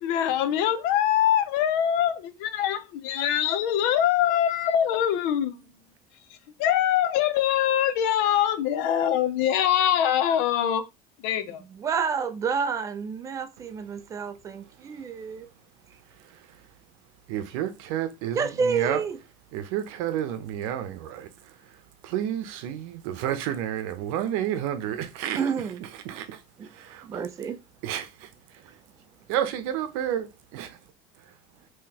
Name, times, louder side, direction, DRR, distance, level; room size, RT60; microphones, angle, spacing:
voice 1, 0.0-5.6 6.6-10.8 11.2-11.6, left 10 dB, 65° left, 0.6 m, -23 dB
voice 2, 11.7-15.5 18.3-19.2 25.4-25.8 26.6-26.7 27.0-27.6, right 6 dB, 20° right, 0.4 m, -29 dB
voice 3, 17.3-19.0 19.5-21.8 22.0-25.5 26.0-27.2 27.8-28.3 28.6-28.7 29.3-30.8, right 10 dB, 75° right, 0.7 m, -31 dB
3.8 x 2.9 x 2.9 m
cardioid pair, 165°, 17 cm